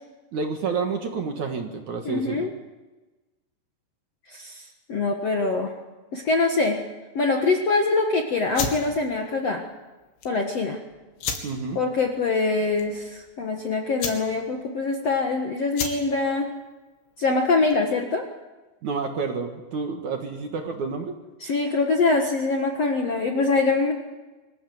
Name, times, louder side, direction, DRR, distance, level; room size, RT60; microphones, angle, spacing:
voice 1, 0.3-2.5 11.4-11.8 18.8-21.1, right 5 dB, 55° right, 4 dB, 2.4 m, -29 dB
voice 2, 2.1-2.5 4.3-5.7 6.1-6.8 7.2-9.6 10.2-10.8 11.8-16.5 17.2-18.2 21.4-23.9, left 3 dB, 55° left, 2 dB, 1.9 m, -24 dB
sound 1, 8.5-18.0, left 6 dB, 80° left, 4.7 m, -36 dB
25.0 x 15.5 x 9.3 m, 1.2 s
omnidirectional pair, 5.0 m